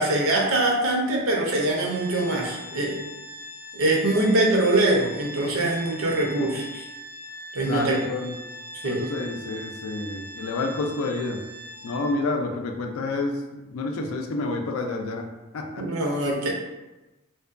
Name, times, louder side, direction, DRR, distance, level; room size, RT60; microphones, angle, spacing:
voice 1, 0.0-3.0 3.7-6.9 7.5-8.0 8.8-9.1 15.8-16.5, right 2 dB, 75° right, -1 dB, 0.6 m, -23 dB
Organ, 1.7-12.4, equal, 5° right, 0.3 m, -41 dB
voice 2, 7.6-8.4 8.8-11.4 11.8-15.3 15.5-15.8, left 3 dB, 80° left, 4 dB, 0.4 m, -29 dB
2.6 x 2.2 x 2.4 m, 1.1 s
head